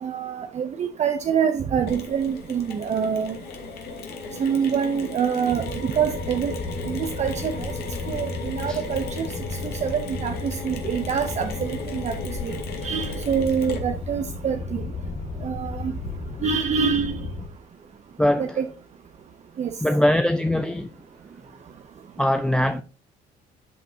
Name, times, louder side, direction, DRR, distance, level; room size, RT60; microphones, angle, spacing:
voice 1, 0.0-3.4 4.4-6.6 6.9-7.7 8.1-9.3 9.8-14.8 15.4-15.9 16.4-17.2 18.4-18.7 19.6-19.7, right 7 dB, 40° right, 0.8 m, -26 dB
Mechanisms, 1.9-14.2, left 4 dB, 65° left, 2.4 m, -37 dB
sound 1, 5.9-17.5, left 3 dB, 35° left, 1.3 m, -33 dB
voice 2, 18.2-18.6 19.8-20.9 22.2-22.8, left 1 dB, 5° left, 0.5 m, -22 dB
12.0 x 5.9 x 2.8 m
cardioid pair, 110°, 17 cm